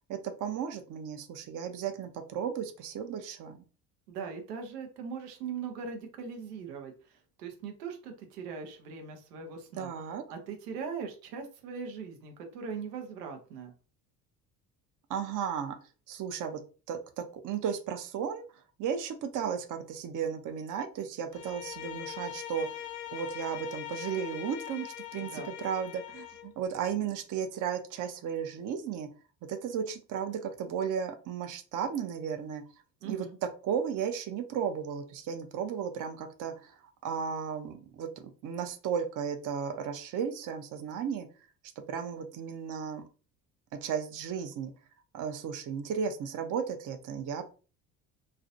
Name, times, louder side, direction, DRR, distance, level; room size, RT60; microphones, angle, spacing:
voice 1, 0.1-3.6 9.8-10.2 15.1-15.7 16.1-16.6 16.9-18.4 18.8-22.7 23.1-29.1 29.5-32.6 33.0-33.3 33.6-36.7 37.0-41.3 41.9-43.0 43.8-44.7 45.1-47.4, right 7 dB, 40° right, 6 dB, 0.6 m, -34 dB
voice 2, 4.1-9.9 10.3-13.7 25.2-25.5 33.0-33.4, right 6 dB, 85° right, 4 dB, 0.7 m, -40 dB
Bowed string instrument, 21.3-26.5, left 12 dB, 70° left, 0.6 m, -41 dB
2.4 x 2.0 x 2.6 m, 0.35 s
hypercardioid pair, 60°, 46 cm